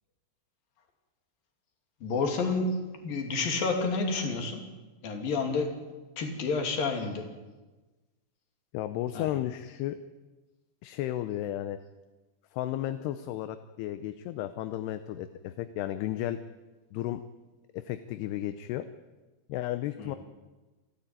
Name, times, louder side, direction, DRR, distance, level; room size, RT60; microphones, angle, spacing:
voice 1, 2.0-4.7 5.0-5.9 6.2-7.3 9.1-9.4 20.0-20.2, left 4 dB, 55° left, 4 dB, 4.3 m, -30 dB
voice 2, 8.7-10.0 10.8-11.8 12.5-16.4 16.9-17.2 17.7-18.9 19.5-20.2, left 13 dB, 75° left, 10 dB, 2.7 m, -33 dB
28.5 x 13.5 x 9.1 m, 1.2 s
omnidirectional pair, 5.1 m